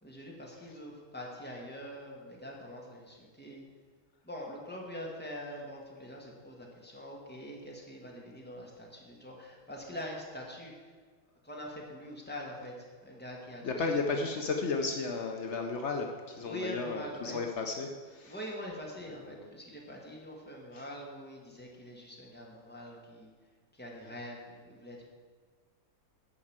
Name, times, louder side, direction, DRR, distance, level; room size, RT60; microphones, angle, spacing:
voice 1, 0.0-3.6 4.2-10.8 11.4-14.0 14.3-14.4 16.4-17.5 18.2-23.3 23.7-25.0, equal, 5° left, -2 dB, 1.5 m, -44 dB
voice 2, 13.6-18.4 19.1-19.5 20.7-20.9, left 4 dB, 85° left, 3 dB, 0.6 m, -34 dB
9.7 x 5.4 x 7.3 m, 1.5 s
omnidirectional pair, 2.2 m